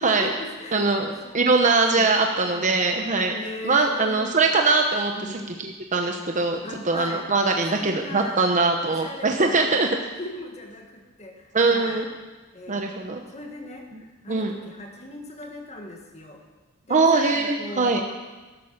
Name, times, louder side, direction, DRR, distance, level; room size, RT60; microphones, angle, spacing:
voice 1, 0.0-0.9 1.2-1.5 1.9-2.1 2.5-2.8 3.3-4.3 5.1-5.5 6.6-7.3 7.7-8.4 8.8-9.8 10.1-12.1 12.5-12.9 13.3-16.4 16.8-18.1, left 1 dB, 30° left, 2 dB, 1.6 m, -38 dB
voice 2, 0.7-3.4 3.6-5.1 5.6-9.9 11.5-12.1 12.7-13.2 14.3-14.5 16.9-18.0, right 3 dB, 35° right, 3 dB, 0.9 m, -22 dB
13.0 x 11.5 x 6.6 m, 1.2 s
head